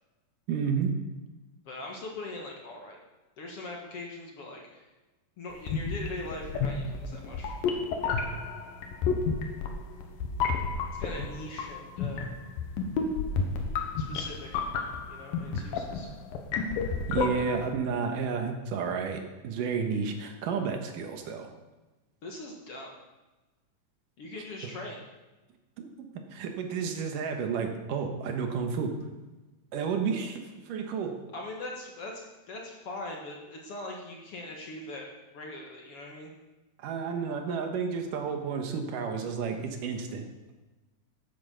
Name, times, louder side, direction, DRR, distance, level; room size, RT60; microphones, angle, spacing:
voice 1, 0.5-0.9 15.5-15.6 17.1-21.5 25.8-28.9 29.7-31.2 36.8-40.2, right 6 dB, 75° right, 5 dB, 2.7 m, -31 dB
voice 2, 1.7-3.0 3.4-4.8 5.4-7.6 11.0-12.3 14.0-14.7 15.1-16.1 17.3-17.5 22.2-22.9 24.2-25.0 31.3-32.2 32.5-36.3, left 2 dB, 50° left, 0 dB, 2.1 m, -41 dB
sound 1, 5.6-17.7, left 4 dB, 85° left, 2.9 m, -31 dB
10.5 x 9.4 x 6.9 m, 1.1 s
omnidirectional pair, 4.0 m